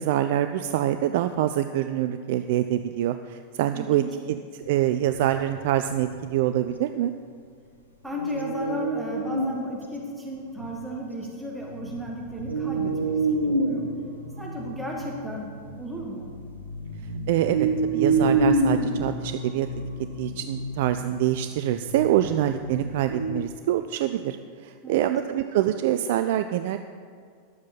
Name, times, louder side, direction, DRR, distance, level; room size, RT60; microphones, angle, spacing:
voice 1, 0.0-4.0 4.5-7.1 17.3-19.7 20.2-26.8, right 12 dB, 50° right, 9 dB, 0.3 m, -25 dB
voice 2, 3.8-4.1 8.0-13.9 14.4-16.3 24.8-25.1, equal, ahead, -3 dB, 1.3 m, -35 dB
sound 1, 4.6-6.4 8.2-9.6 10.0-10.1 10.6-11.1 11.6-23.4, right 2 dB, 90° left, 1.2 m, -28 dB
11.0 x 7.3 x 5.6 m, 2.1 s
figure-of-eight pair, 90°, 0 cm